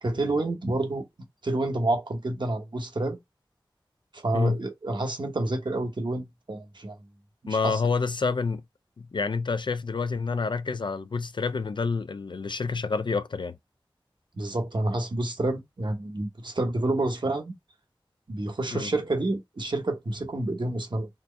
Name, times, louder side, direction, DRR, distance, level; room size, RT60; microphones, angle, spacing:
voice 1, 0.0-1.1 1.4-3.2 4.1-7.0 7.4-7.8 14.3-17.5 18.3-21.1, right 2 dB, 60° right, 1.0 m, -29 dB
voice 2, 7.5-8.6 9.0-13.6 18.7-18.9, left 4 dB, 60° left, 0.3 m, -28 dB
4.2 x 2.2 x 3.2 m
wide cardioid pair, 50°, 9 cm